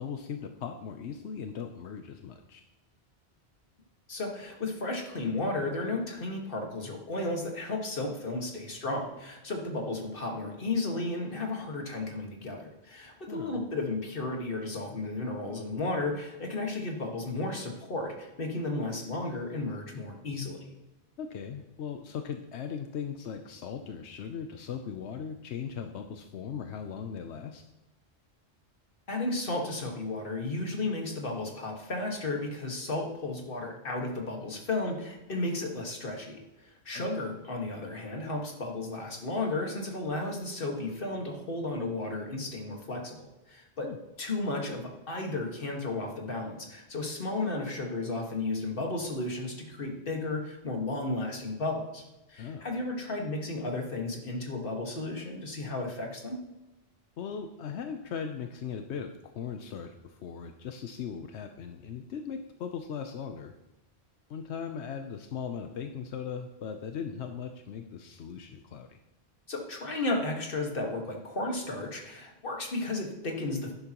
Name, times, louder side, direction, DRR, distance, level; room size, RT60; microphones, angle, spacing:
voice 1, 0.0-2.6 13.3-13.6 21.2-27.6 36.9-37.1 43.8-44.0 52.4-52.7 57.2-63.5 64.3-69.0, left 7 dB, 85° left, 6 dB, 1.0 m, -38 dB
voice 2, 4.1-20.6 29.1-43.9 44.2-52.0 52.3-56.4 69.5-73.7, left 2 dB, 55° left, 2 dB, 1.9 m, -33 dB
11.5 x 10.5 x 3.0 m, 1.0 s
omnidirectional pair, 1.1 m